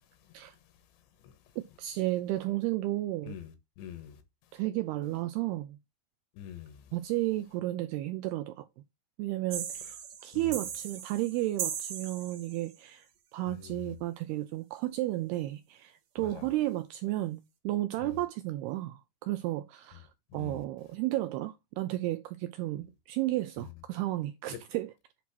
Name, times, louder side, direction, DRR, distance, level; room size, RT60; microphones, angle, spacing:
voice 1, 1.6-3.4 4.5-5.8 6.9-8.7 9.2-10.0 10.2-13.1 13.3-20.1 20.3-24.9, right 16 dB, 85° right, 2.3 m, -33 dB
voice 2, 3.2-4.2 6.3-7.0 10.3-10.6 13.5-14.0 16.2-16.5 18.0-18.2 20.3-20.7 23.6-23.7, left 11 dB, 80° left, 3.4 m, -46 dB
sound 1, 9.5-12.7, right 8 dB, 65° right, 2.1 m, -38 dB
8.3 x 3.1 x 6.0 m
omnidirectional pair, 5.1 m